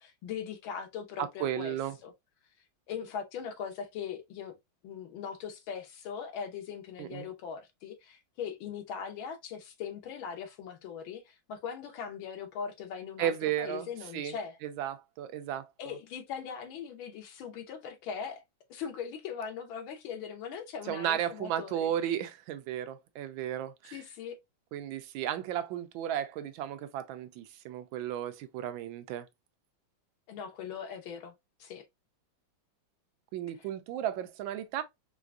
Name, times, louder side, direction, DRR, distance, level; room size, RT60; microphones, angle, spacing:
voice 1, 0.0-1.8 2.0-2.1 2.9-4.6 4.8-14.6 15.8-18.4 18.7-21.9 23.9-24.4 30.3-31.3 31.6-31.8 33.5-33.7, left 7 dB, 90° left, 1.7 m, -40 dB
voice 2, 1.4-1.9 7.0-7.3 13.2-13.9 14.1-14.3 14.6-15.9 20.9-24.0 24.7-29.3 33.3-34.8, right 10 dB, 85° right, 1.3 m, -34 dB
4.5 x 2.5 x 2.2 m
omnidirectional pair, 2.1 m